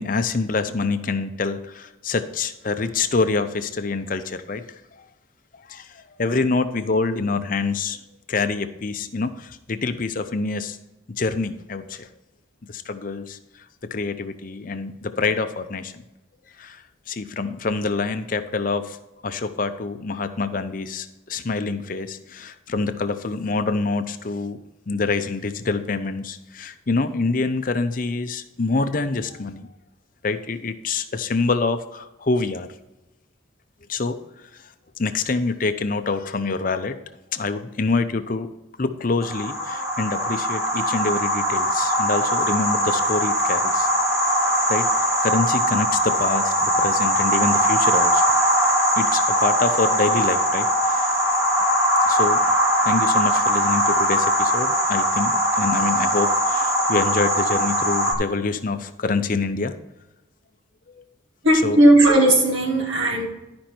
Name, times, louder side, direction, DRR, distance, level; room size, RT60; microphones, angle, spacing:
voice 1, 0.0-4.8 5.7-5.9 6.2-8.0 8.3-10.8 11.2-12.1 12.7-13.4 13.9-15.9 16.6-19.0 19.2-24.6 24.9-29.7 30.2-32.7 33.9-34.2 35.0-37.0 37.3-38.5 38.8-43.9 44.7-44.9 45.2-48.2 49.0-51.2 52.0-52.4 52.8-59.7 60.9-61.0 61.6-61.8, left 3 dB, 45° left, 9 dB, 0.6 m, -26 dB
sound 1, 39.2-58.1, equal, 15° right, 1.3 m, -21 dB
voice 2, 61.4-63.3, right 1 dB, 80° right, 0 dB, 2.1 m, -16 dB
11.5 x 5.2 x 4.4 m, 0.96 s
head